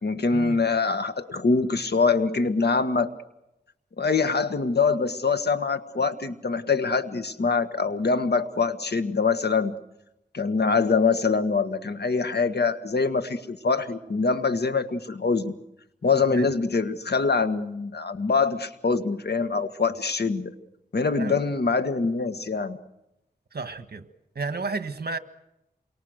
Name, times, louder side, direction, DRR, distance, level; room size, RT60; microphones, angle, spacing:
voice 1, 0.0-3.1 4.0-9.8 10.3-15.6 16.0-20.5 20.9-22.8, left 4 dB, 75° left, 1.7 m, -24 dB
voice 2, 23.5-24.1 24.3-25.2, right 3 dB, 65° right, 1.6 m, -32 dB
28.5 x 24.0 x 6.6 m
wide cardioid pair, 55°, 17 cm